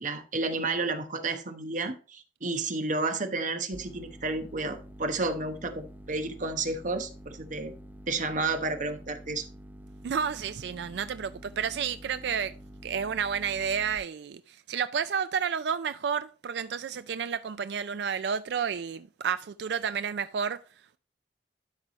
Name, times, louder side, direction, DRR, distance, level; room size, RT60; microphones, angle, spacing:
voice 1, 0.0-7.7 8.1-9.5, right 3 dB, 45° right, 1.1 m, -31 dB
sound 1, 3.7-14.0, right 1 dB, 10° right, 0.7 m, -48 dB
voice 2, 10.0-12.5 12.8-20.6, right 7 dB, 70° right, 0.4 m, -31 dB
12.0 x 4.8 x 2.9 m
head